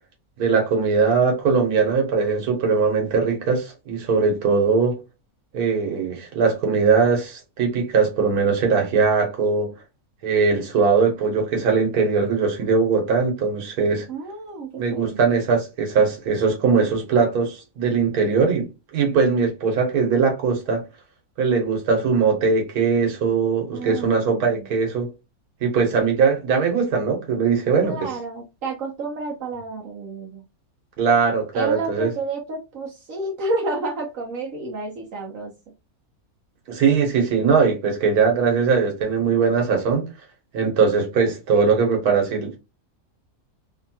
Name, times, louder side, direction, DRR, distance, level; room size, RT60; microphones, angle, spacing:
voice 1, 0.4-5.0 5.5-9.7 10.2-14.1 14.8-20.8 21.4-25.1 25.6-28.1 31.0-32.1 36.7-40.0 40.5-42.6, right 5 dB, 85° right, 1.5 m, -20 dB
voice 2, 14.1-15.2 23.7-24.7 27.8-30.4 31.5-35.5, right 2 dB, 65° right, 1.0 m, -30 dB
3.2 x 2.2 x 2.7 m
omnidirectional pair, 1.5 m